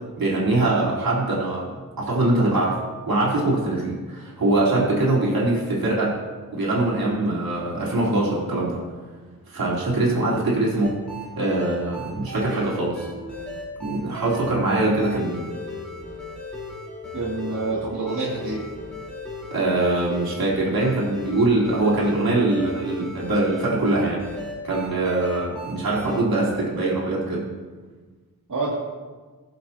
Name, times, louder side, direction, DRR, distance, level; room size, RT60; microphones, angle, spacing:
voice 1, 0.2-1.7 2.0-2.8 3.1-6.2 6.5-8.8 9.5-10.9 11.4-13.1 13.8-15.5 19.5-24.2 24.6-27.5, right 2 dB, 70° right, -6 dB, 4.0 m, -23 dB
sound 1, 10.8-26.2, left 2 dB, 5° left, 4.1 m, -36 dB
voice 2, 17.1-18.6 28.5-28.7, right 3 dB, 55° right, -9 dB, 2.7 m, -27 dB
21.0 x 7.6 x 3.0 m, 1.4 s
wide cardioid pair, 115°, 36 cm